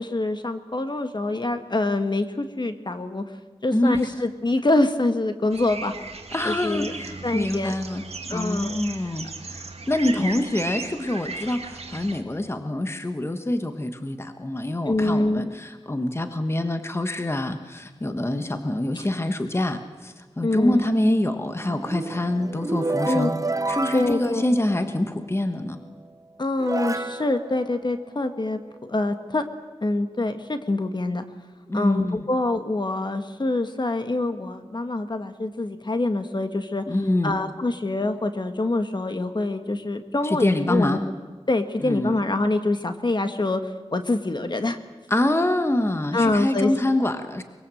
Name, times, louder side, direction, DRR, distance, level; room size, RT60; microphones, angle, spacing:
voice 1, 0.0-3.2 3.6-5.9 6.4-6.9 7.2-7.8 8.3-8.8 10.1-10.3 14.9-15.5 18.9-19.0 20.4-20.9 23.0-23.3 23.9-24.4 26.4-29.4 29.8-31.2 31.7-36.8 37.2-41.0 41.5-43.6 43.9-44.8 46.1-46.7, left 2 dB, 45° left, 8 dB, 1.6 m, -25 dB
sound 1, 5.5-12.2, right 3 dB, 70° right, 2.2 m, -36 dB
voice 2, 6.3-23.4 23.7-25.8 31.7-32.2 36.9-37.4 40.2-41.1 41.8-42.2 45.1-47.4, left 1 dB, 25° left, 8 dB, 1.5 m, -25 dB
sound 2, 21.5-25.2 26.0-26.1 26.6-28.5, right 2 dB, 30° right, 1.0 m, -30 dB
23.0 x 22.0 x 7.8 m, 1.3 s
wide cardioid pair, 75°, 11 cm